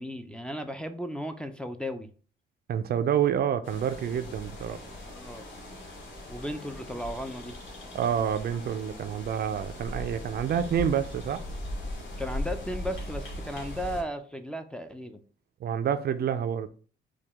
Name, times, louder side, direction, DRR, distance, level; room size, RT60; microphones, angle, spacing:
voice 1, 0.0-2.1 5.1-5.5 6.3-7.6 12.2-15.2, equal, 5° left, 0.4 m, -35 dB
voice 2, 2.7-4.8 7.9-11.4 15.6-16.7, right 8 dB, 55° right, 0.4 m, -28 dB
sound 1, 3.6-14.0, left 1 dB, 75° left, 1.4 m, -39 dB
4.7 x 2.3 x 3.4 m
cardioid pair, 90°, 20 cm